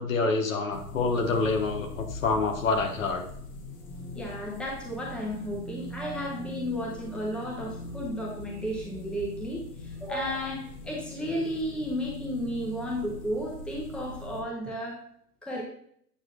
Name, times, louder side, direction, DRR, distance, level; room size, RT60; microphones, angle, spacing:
voice 1, 0.0-3.2, left 3 dB, 55° left, 4 dB, 1.3 m, -27 dB
sound 1, 0.7-14.4, left 1 dB, 25° left, 1.2 m, -41 dB
voice 2, 4.1-15.0 15.4-15.6, equal, ahead, -2 dB, 1.1 m, -33 dB
8.6 x 6.1 x 2.6 m, 0.66 s
figure-of-eight pair, 110°, 47 cm